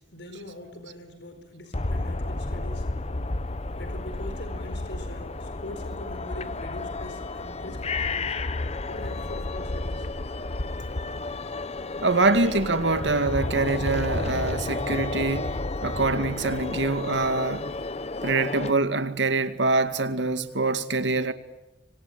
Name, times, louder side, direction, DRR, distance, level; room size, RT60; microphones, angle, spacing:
voice 1, 0.0-3.0 3.8-8.3 8.9-10.1, left 1 dB, 75° left, 4.5 m, -42 dB
sound 1, 1.7-18.7, left 2 dB, 35° left, 1.0 m, -31 dB
voice 2, 12.0-17.7 18.2-21.3, right 3 dB, 85° right, 2.2 m, -25 dB
26.5 x 25.0 x 8.9 m
head